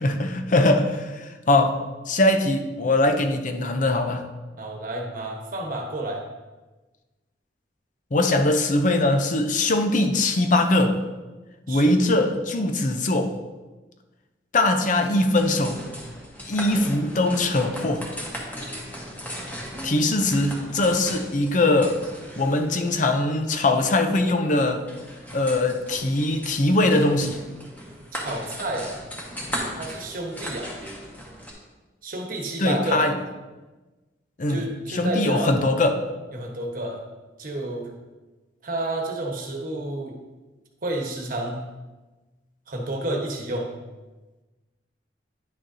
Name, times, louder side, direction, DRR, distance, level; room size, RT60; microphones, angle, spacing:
voice 1, 0.0-4.2 8.1-11.0 11.7-13.3 14.5-15.8 16.5-18.1 19.8-22.0 22.4-24.9 25.3-27.4 32.6-33.2 34.4-36.1, left 2 dB, 45° left, 6 dB, 0.6 m, -21 dB
voice 2, 4.6-6.2 11.7-12.2 28.2-28.9 29.8-30.8 32.0-33.1 34.5-35.7 36.3-37.0 37.4-37.9 38.6-40.1 40.8-41.6 42.7-43.7, right 1 dB, 50° right, 2 dB, 1.2 m, -30 dB
sound 1, 15.0-31.5, equal, 10° left, 1.4 m, -37 dB
10.0 x 6.3 x 2.7 m, 1.2 s
head